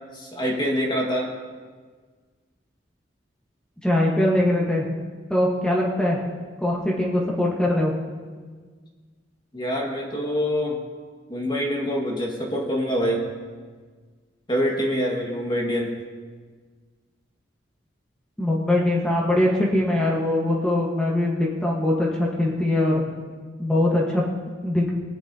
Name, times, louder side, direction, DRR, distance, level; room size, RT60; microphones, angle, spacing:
voice 1, 0.1-1.3 9.5-10.8 11.3-13.2 14.5-15.9, equal, 25° left, -1 dB, 1.8 m, -25 dB
voice 2, 3.8-4.8 5.3-6.2 6.6-7.9 18.4-23.0 23.6-24.9, left 1 dB, 5° left, -4 dB, 1.3 m, -22 dB
19.0 x 9.4 x 2.8 m, 1.5 s
head